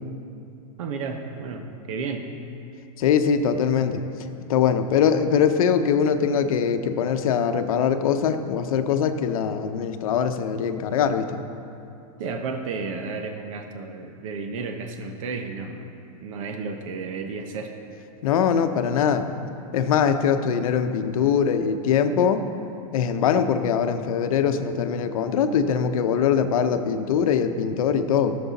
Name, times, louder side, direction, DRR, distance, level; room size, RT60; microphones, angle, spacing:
voice 1, 0.8-2.3 12.2-15.9 16.2-17.7, right 4 dB, 60° right, 4 dB, 1.0 m, -32 dB
voice 2, 3.0-4.0 4.5-11.4 18.2-19.3 19.7-22.4 22.9-28.4, left 7 dB, 65° left, 8 dB, 0.8 m, -22 dB
16.0 x 6.9 x 4.1 m, 2.7 s
supercardioid pair, 160°, 19 cm